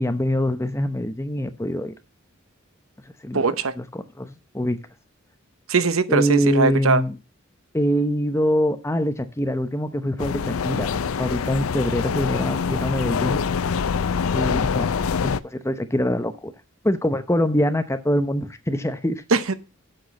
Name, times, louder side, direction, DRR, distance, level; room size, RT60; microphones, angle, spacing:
voice 1, 0.0-2.0 3.2-3.4 3.8-4.8 6.1-7.2 7.7-10.9 11.2-13.4 14.3-14.9 15.2-16.5 16.8-19.2, equal, 15° left, 0.8 m, -24 dB
voice 2, 3.3-3.7 5.7-7.0 19.3-19.5, right 4 dB, 85° right, 0.9 m, -20 dB
sound 1, 10.2-15.4, left 6 dB, 90° left, 0.5 m, -25 dB
7.8 x 6.1 x 7.1 m
head